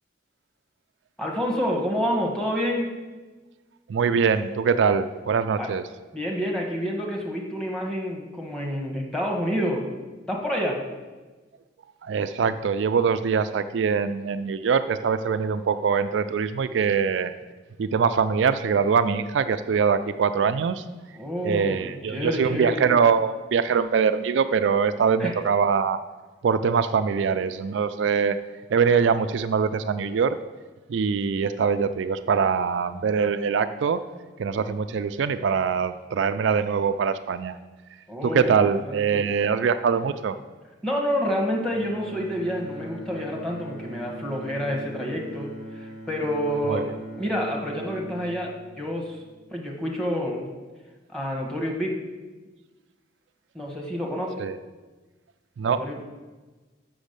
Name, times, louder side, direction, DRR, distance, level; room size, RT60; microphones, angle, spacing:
voice 1, 1.2-2.9 5.6-5.7 6.1-9.9 10.3-10.8 21.1-22.9 25.2-25.3 38.1-39.2 40.8-46.9 47.2-49.2 49.5-50.5 51.1-51.9 53.5-54.4 55.7-56.0, equal, 5° left, -1 dB, 1.4 m, -28 dB
voice 2, 3.9-5.8 12.0-17.3 17.8-20.8 21.4-26.0 26.4-28.4 28.7-30.4 30.9-34.0 34.4-37.6 38.2-40.4 46.7-46.8 54.4-54.6 55.6-56.0, right 6 dB, 75° right, 10 dB, 0.3 m, -23 dB
Bowed string instrument, 41.6-49.8, right 1 dB, 50° left, 2.1 m, -41 dB
6.2 x 6.2 x 6.6 m, 1.3 s
head